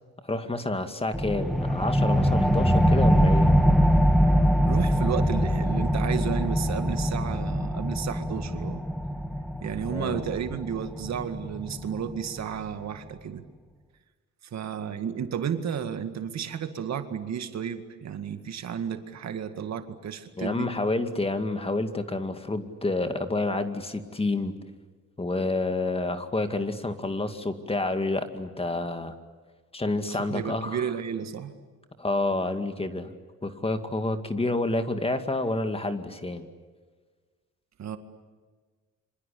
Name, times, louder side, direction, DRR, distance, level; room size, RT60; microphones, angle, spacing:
voice 1, 0.2-3.5 9.9-10.2 20.4-24.5 25.2-29.1 29.7-30.9 32.0-33.1 33.4-36.5, left 2 dB, 20° left, 8 dB, 2.2 m, -29 dB
sound 1, 1.1-12.2, equal, ahead, 1.6 m, -23 dB
voice 2, 4.7-8.8 9.6-13.4 14.5-20.7 30.1-31.5 37.8-38.0, right 8 dB, 60° right, 8 dB, 2.1 m, -32 dB
26.5 x 25.5 x 8.6 m, 1.4 s
cardioid pair, 90°, 30 cm